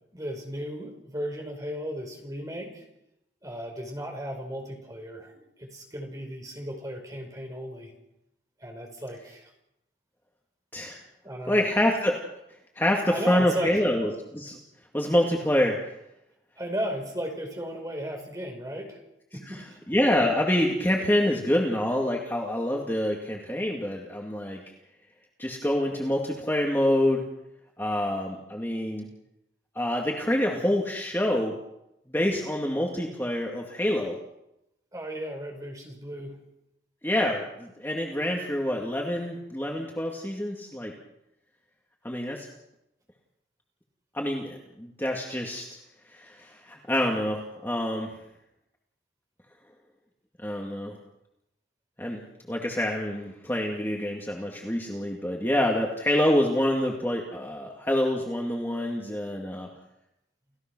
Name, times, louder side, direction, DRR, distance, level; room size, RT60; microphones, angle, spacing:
voice 1, 0.1-2.8 3.4-7.9 8.6-9.5 11.2-11.7 13.1-13.8 16.6-19.0 19.3-19.8 34.9-36.4, equal, 20° right, 2 dB, 5.1 m, -35 dB
voice 2, 11.5-12.2 12.8-14.6 14.9-15.8 19.5-19.6 19.9-24.6 25.4-27.3 27.8-29.1 29.8-31.6 32.1-34.2 37.0-40.9 42.0-42.5 44.1-45.7 46.1-48.1 50.4-51.0 52.0-52.2 52.5-59.7, left 1 dB, 10° left, 0 dB, 2.2 m, -26 dB
29.5 x 16.0 x 6.2 m, 0.85 s
head